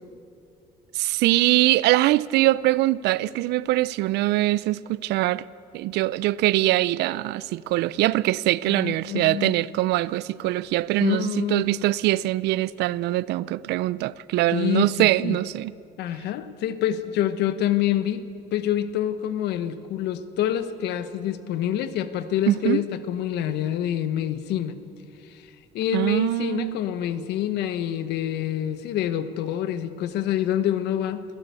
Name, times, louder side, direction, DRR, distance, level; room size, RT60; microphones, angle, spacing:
voice 1, 0.9-5.4 5.7-15.7 22.5-22.8 25.9-26.8, right 17 dB, 80° right, 0.5 m, -23 dB
voice 2, 8.7-9.6 11.0-11.7 14.5-15.4 16.0-18.2 18.5-24.8 25.2-25.5 25.7-31.2, left 11 dB, 80° left, 1.2 m, -27 dB
22.0 x 16.0 x 8.3 m
cardioid pair, 110°, 17 cm